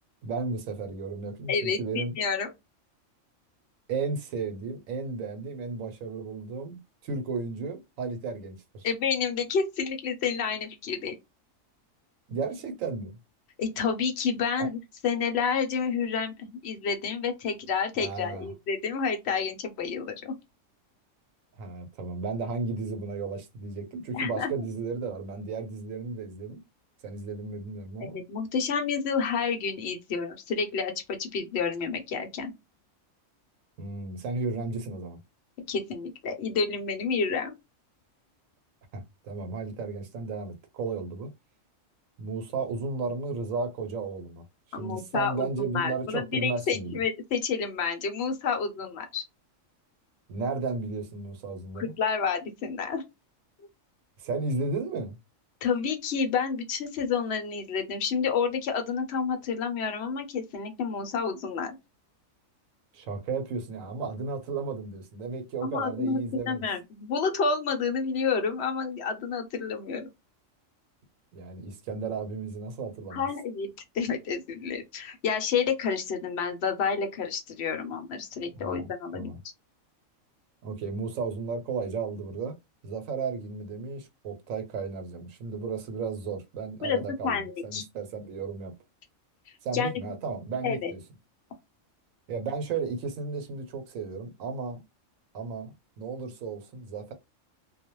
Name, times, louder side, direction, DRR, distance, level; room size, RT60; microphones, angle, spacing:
voice 1, 0.2-2.1 3.9-8.9 12.3-13.1 14.6-14.7 18.0-18.5 21.6-26.6 27.0-28.2 33.8-35.2 38.9-41.3 42.2-44.4 44.8-46.9 50.3-51.9 54.2-55.2 62.9-66.6 71.3-73.3 78.5-79.4 80.6-82.6 82.8-88.7 89.6-91.0 92.3-94.8 95.3-97.1, right 4 dB, 80° right, 1.1 m, -34 dB
voice 2, 1.5-2.5 8.8-11.1 13.6-20.3 24.1-24.5 28.0-30.9 31.2-32.5 35.7-37.5 44.7-49.2 51.8-53.0 55.6-61.7 65.6-70.1 73.1-79.3 86.8-87.0 87.2-87.8 89.7-89.9 90.6-90.9, left 5 dB, 60° left, 0.8 m, -29 dB
2.3 x 2.1 x 2.9 m
omnidirectional pair, 1.4 m